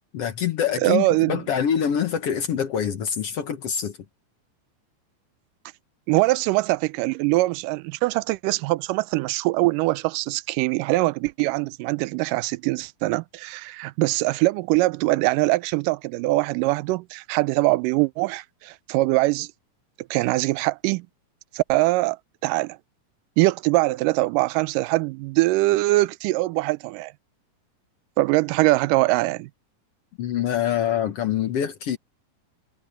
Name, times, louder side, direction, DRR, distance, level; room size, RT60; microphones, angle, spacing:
voice 1, 0.1-4.0 30.2-32.0, left 9 dB, 60° left, 1.8 m, -25 dB
voice 2, 0.8-1.4 6.1-19.5 20.1-21.1 21.5-22.2 22.4-22.8 23.4-27.1 28.2-29.5, right 20 dB, 90° right, 2.2 m, -22 dB
omnidirectional pair, 3.7 m